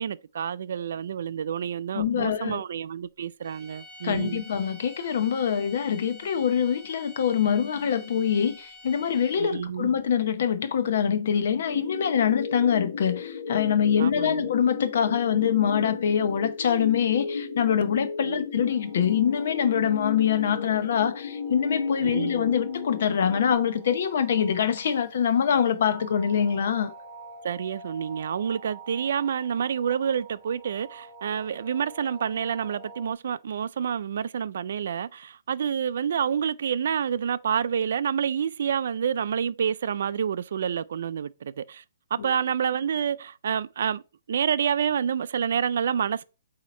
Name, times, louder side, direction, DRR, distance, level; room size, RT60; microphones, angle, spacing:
voice 1, 0.0-4.4 9.4-9.9 14.0-14.5 18.2-18.4 22.0-22.4 27.4-41.8 42.1-44.0 44.3-46.2, right 8 dB, 65° right, 0.3 m, -28 dB
voice 2, 1.9-2.6 4.0-26.9 42.2-42.3, left 8 dB, 60° left, 0.8 m, -24 dB
sound 1, 3.4-9.6, left 2 dB, 5° right, 2.0 m, -48 dB
sound 2, 11.6-23.5, left 5 dB, 75° left, 1.1 m, -34 dB
sound 3, 18.7-33.1, right 2 dB, 25° right, 1.4 m, -48 dB
8.1 x 2.8 x 4.2 m
hypercardioid pair, 150°, 0 cm